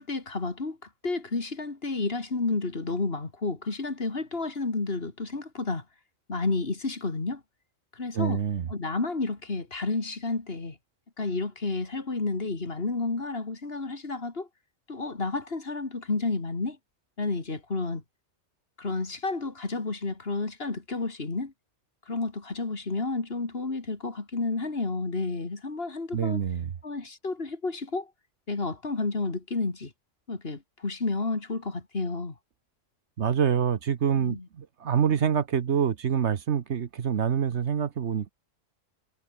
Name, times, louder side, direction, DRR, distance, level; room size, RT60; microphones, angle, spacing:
voice 1, 0.0-5.8 6.3-7.4 7.9-8.4 8.7-10.8 11.2-14.5 14.9-16.8 17.2-18.0 18.8-21.5 22.1-26.4 26.8-28.1 28.5-29.9 30.3-32.3 34.1-34.4, left 3 dB, 50° left, 2.7 m, -31 dB
voice 2, 8.1-8.7 26.1-26.7 33.2-38.3, right 8 dB, 60° right, 1.2 m, -26 dB
omnidirectional pair, 1.3 m